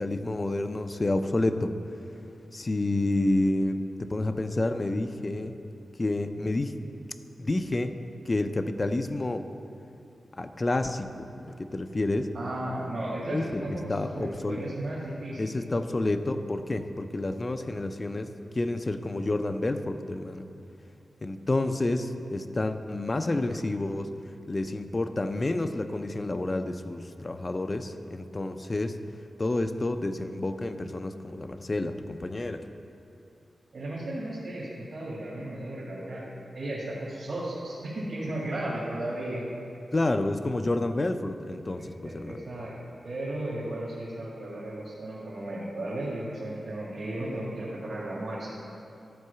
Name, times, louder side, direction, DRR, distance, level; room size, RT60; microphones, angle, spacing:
voice 1, 0.0-1.7 2.5-5.6 6.0-6.7 7.4-9.5 10.4-12.3 13.3-14.6 15.4-20.5 21.2-24.1 24.5-29.0 29.4-32.7 39.9-42.4, left 2 dB, 25° left, 8 dB, 0.4 m, -29 dB
voice 2, 12.3-15.4 33.7-36.3 36.5-39.5 42.0-48.5, right 1 dB, 55° right, -8 dB, 1.8 m, -35 dB
12.5 x 4.7 x 6.8 m, 2.6 s
wide cardioid pair, 165°, 0 cm